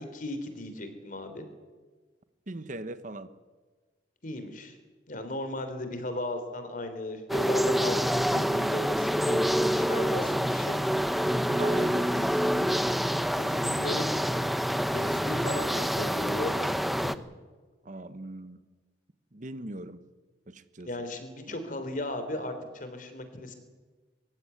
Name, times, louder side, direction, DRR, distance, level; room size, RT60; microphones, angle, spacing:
voice 1, 0.0-1.4 4.2-4.8 5.1-10.8 13.4-14.4 14.9-17.2 20.9-23.5, left 1 dB, 45° left, 9 dB, 3.3 m, -36 dB
voice 2, 2.5-3.3 11.2-12.9 14.3-14.4 17.8-18.6 19.3-20.0 20.5-20.9 21.5-21.6, right 2 dB, 45° right, 12 dB, 1.0 m, -40 dB
sound 1, 7.3-17.1, equal, ahead, 0.7 m, -27 dB
23.5 x 15.0 x 9.7 m, 1.3 s
head